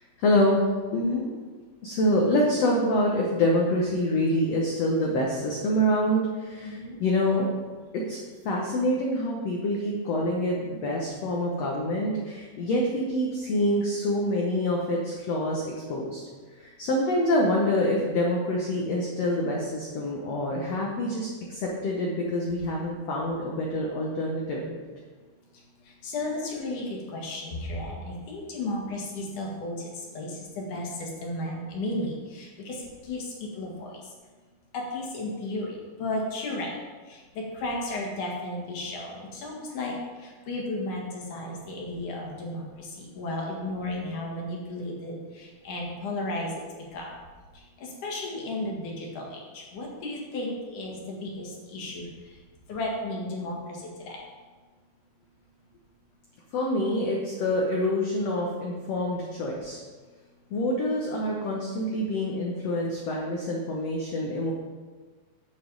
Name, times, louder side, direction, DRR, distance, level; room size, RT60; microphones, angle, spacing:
voice 1, 0.2-0.6 0.9-1.0 1.8-7.5 7.9-8.2 8.4-16.2 16.6-24.8 56.5-59.8 60.5-64.5, left 1 dB, 80° left, -1 dB, 1.4 m, -26 dB
voice 2, 0.9-1.3 6.6-7.0 26.0-29.8 30.1-30.3 30.6-32.8 33.1-33.9 34.7-35.7 36.0-36.7 37.4-40.0 40.5-45.2 45.6-46.5 46.9-47.1 47.8-49.3 49.5-52.0 52.7-53.8 54.1-54.2, left 2 dB, 60° left, -1 dB, 2.9 m, -33 dB
8.5 x 7.4 x 5.4 m, 1.4 s
omnidirectional pair, 4.5 m